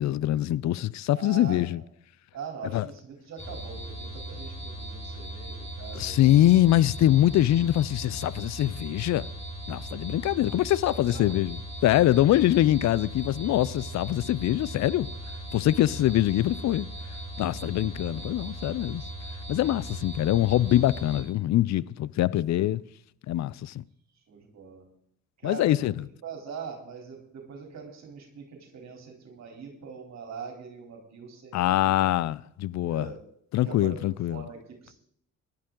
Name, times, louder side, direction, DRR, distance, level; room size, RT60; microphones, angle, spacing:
voice 1, 0.0-1.8 2.7-2.9 5.9-9.3 9.7-11.6 11.8-15.1 15.5-16.9 17.4-19.0 19.5-22.8 23.3-23.8 25.4-25.9 31.5-33.1 33.5-34.4, left 14 dB, 65° left, 0.5 m, -24 dB
voice 2, 1.1-1.8 2.3-6.2 10.8-11.4 12.2-12.3 18.1-18.7 19.7-20.0 24.3-24.8 25.4-32.1 32.8-33.2 33.6-34.9, right 6 dB, 60° right, 3.5 m, -43 dB
sound 1, 3.4-21.2, right 1 dB, 20° left, 4.9 m, -38 dB
18.5 x 11.5 x 3.8 m
cardioid pair, 90°, 30 cm